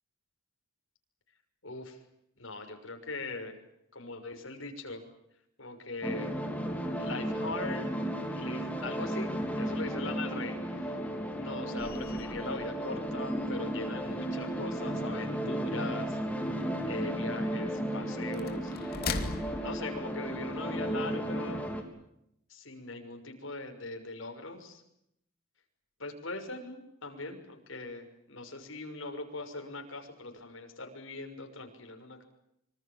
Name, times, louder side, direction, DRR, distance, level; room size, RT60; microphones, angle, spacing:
voice 1, 1.6-2.0 2.4-3.6 3.9-5.0 5.6-6.4 7.0-7.9 8.4-9.3 9.6-11.0 11.4-16.2 16.5-18.7 19.6-21.7 22.5-24.8 26.0-32.2, left 2 dB, 70° left, 4 dB, 6.4 m, -40 dB
sound 1, 6.0-21.8, equal, 5° left, 3.7 m, -34 dB
sound 2, 11.8-20.8, left 3 dB, 45° left, 2.8 m, -43 dB
26.0 x 25.5 x 7.5 m, 0.78 s
head